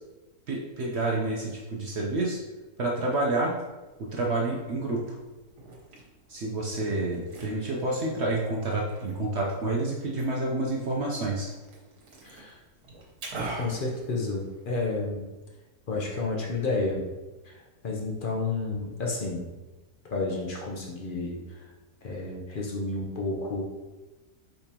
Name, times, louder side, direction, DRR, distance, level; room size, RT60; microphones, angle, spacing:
voice 1, 0.5-2.4 2.8-3.5 4.0-5.2 6.3-11.5, right 2 dB, 65° right, -2 dB, 0.7 m, -29 dB
Liquid, 3.8-14.8, right 2 dB, 85° right, 1.7 m, -45 dB
voice 2, 12.2-12.6 13.6-15.2 15.9-17.0 17.4-17.5 17.8-19.5 20.1-21.7 22.0-23.6, left 3 dB, 50° left, -2 dB, 0.6 m, -31 dB
5.1 x 3.3 x 2.8 m, 1.2 s
omnidirectional pair, 1.7 m